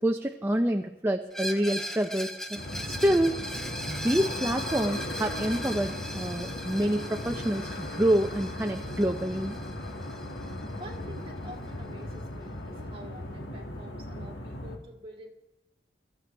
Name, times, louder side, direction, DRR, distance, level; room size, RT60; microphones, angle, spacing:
voice 1, 0.0-3.5 3.9-9.6, right 1 dB, 15° right, 4 dB, 0.6 m, -27 dB
Screech, 1.3-11.0, equal, ahead, 0.9 m, -39 dB
sound 1, 2.6-14.8, left 1 dB, 85° left, 2.2 m, -37 dB
voice 2, 10.8-15.3, equal, 30° right, 1 dB, 2.3 m, -47 dB
21.0 x 14.5 x 3.5 m, 0.93 s
head